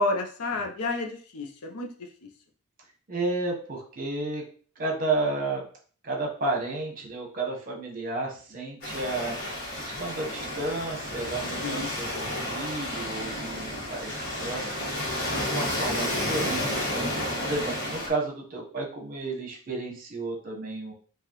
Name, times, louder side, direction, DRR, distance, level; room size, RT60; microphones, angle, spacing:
voice 1, 0.0-1.9 11.4-11.9, left 2 dB, 85° left, 3 dB, 0.7 m, -30 dB
voice 2, 3.1-4.4 4.8-5.6 6.0-9.4 9.8-14.1 14.4-20.9, right 2 dB, 40° right, 0 dB, 1.0 m, -32 dB
Waves surf, 8.8-18.1, left 1 dB, 45° left, 1.3 m, -31 dB
4.8 x 2.4 x 3.0 m, 0.43 s
head